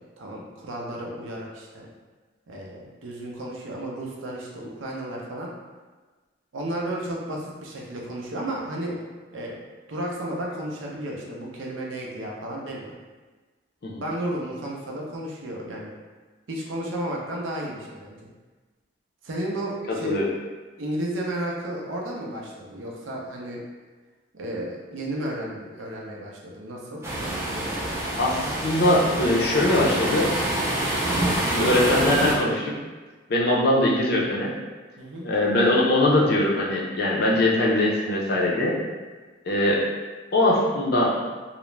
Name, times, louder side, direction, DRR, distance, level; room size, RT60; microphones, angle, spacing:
voice 1, 0.2-1.9 2.5-5.5 6.5-9.0 9.3-9.6 9.9-12.9 14.0-15.9 16.5-18.2 19.2-20.2 20.8-23.6 24.3-27.0 27.5-27.8 35.0-35.3, right 1 dB, 75° right, -2 dB, 0.5 m, -33 dB
voice 2, 19.9-20.3 28.2-30.3 31.4-32.8 33.3-34.5 35.2-38.8 39.4-39.8 40.3-41.2, left 1 dB, 50° left, -3 dB, 0.5 m, -21 dB
sound 1, 27.0-32.3, right 1 dB, 15° right, 0.4 m, -26 dB
2.3 x 2.0 x 3.1 m, 1.3 s
head